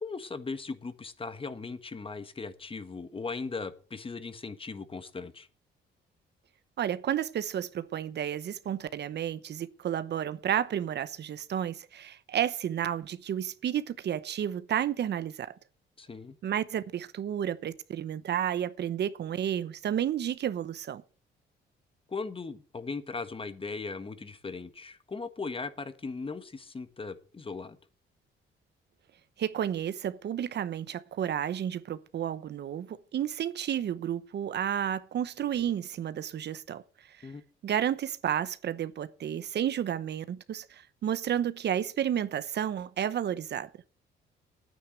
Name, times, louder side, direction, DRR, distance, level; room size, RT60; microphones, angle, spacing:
voice 1, 0.0-5.5 16.0-16.3 22.1-27.8 37.2-37.4, left 4 dB, 25° left, 1.5 m, -38 dB
voice 2, 6.8-15.5 16.4-21.0 29.4-36.8 37.2-37.3 37.6-43.7, right 10 dB, 60° right, 0.8 m, -31 dB
9.9 x 9.4 x 7.6 m
cardioid pair, 90°, 20 cm